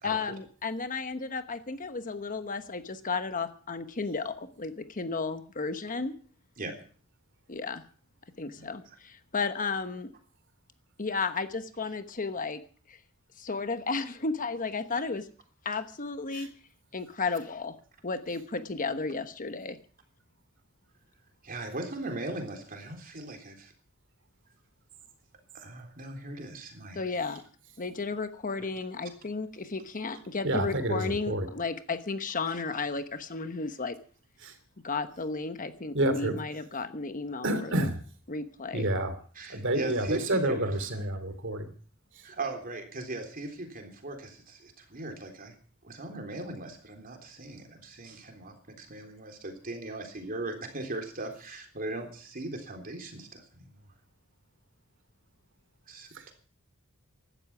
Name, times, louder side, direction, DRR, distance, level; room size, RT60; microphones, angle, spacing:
voice 1, 0.0-6.1 7.5-7.8 8.4-10.1 11.0-12.6 12.9-13.0 13.4-15.3 15.6-16.5 16.9-17.8 18.0-19.8 26.9-27.4 27.8-34.0 34.8-37.9 38.3-38.9, left 4 dB, 40° left, 10 dB, 1.2 m, -33 dB
voice 2, 21.4-23.7 25.5-27.0 39.4-40.8 42.2-45.6 45.8-53.8 55.9-56.3, right 2 dB, 40° right, 4 dB, 3.6 m, -39 dB
voice 3, 30.4-31.5 34.4-34.5 35.9-36.3 37.4-38.0 38.7-39.1 39.5-41.7, right 1 dB, 60° right, 9 dB, 2.9 m, -29 dB
16.0 x 12.5 x 6.1 m, 0.43 s
head